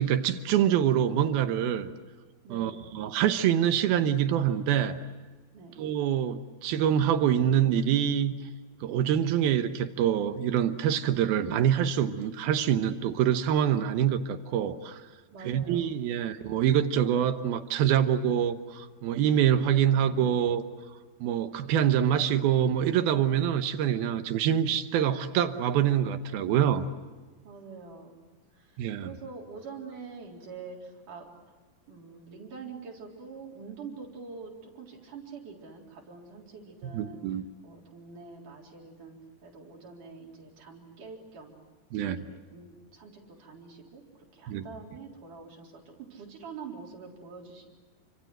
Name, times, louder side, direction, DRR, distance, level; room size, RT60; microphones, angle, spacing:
voice 1, 0.0-1.9 2.5-5.0 5.8-8.3 8.8-15.0 15.4-20.6 21.2-26.8 28.8-29.1 36.9-37.5 41.9-42.3 44.5-44.6, right 9 dB, 75° right, 9 dB, 2.9 m, -25 dB
voice 2, 2.4-2.8 5.5-5.8 15.3-15.9 27.4-28.2 28.5-31.3 31.9-37.3 37.6-41.5 42.2-44.0 44.3-47.7, right 5 dB, 55° right, 0 dB, 5.3 m, -45 dB
29.0 x 25.5 x 7.9 m, 1.3 s
omnidirectional pair, 4.5 m